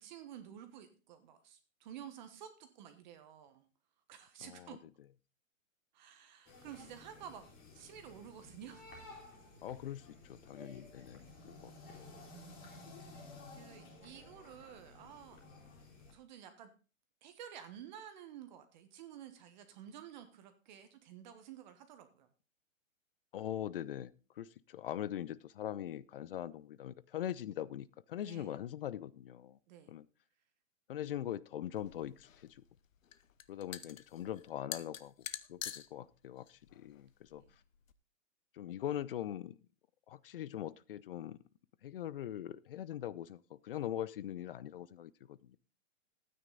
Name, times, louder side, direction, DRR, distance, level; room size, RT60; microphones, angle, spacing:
voice 1, 0.0-3.6 4.1-4.8 5.9-7.5 7.7-8.8 13.5-15.4 16.1-16.7 17.2-22.3 28.2-28.5 29.7-29.9 37.4-37.5, right 9 dB, 35° right, 1.4 m, -51 dB
voice 2, 4.4-4.8 9.6-11.7 12.0-12.1 23.3-29.6 29.9-30.1 30.9-32.6 33.5-35.1 35.5-37.4 38.5-39.6 40.1-41.4 41.8-45.6, left 11 dB, 45° left, 0.6 m, -42 dB
sound 1, 6.5-16.1, left 2 dB, 20° left, 3.2 m, -54 dB
sound 2, 31.8-37.9, left 9 dB, 75° left, 1.0 m, -47 dB
12.5 x 9.4 x 3.9 m
hypercardioid pair, 155°, 40 cm